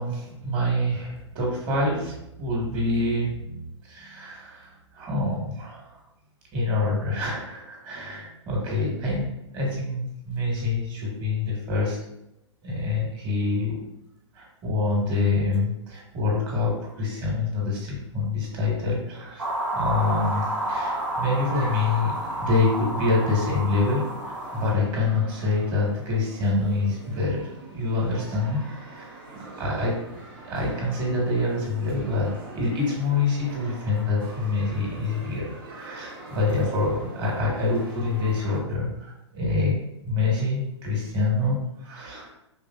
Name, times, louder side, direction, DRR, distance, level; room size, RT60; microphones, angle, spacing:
voice 1, 0.0-6.0 6.5-12.0 12.6-13.8 14.3-28.6 28.9-29.9 30.4-39.8 40.0-42.3, left 3 dB, 30° right, -3 dB, 1.6 m, -26 dB
sound 1, 19.4-24.7, right 1 dB, 75° right, 1.3 m, -30 dB
sound 2, 20.0-38.6, right 2 dB, 45° right, 1.2 m, -44 dB
5.4 x 3.6 x 2.4 m, 0.86 s
figure-of-eight pair, 115°, 16 cm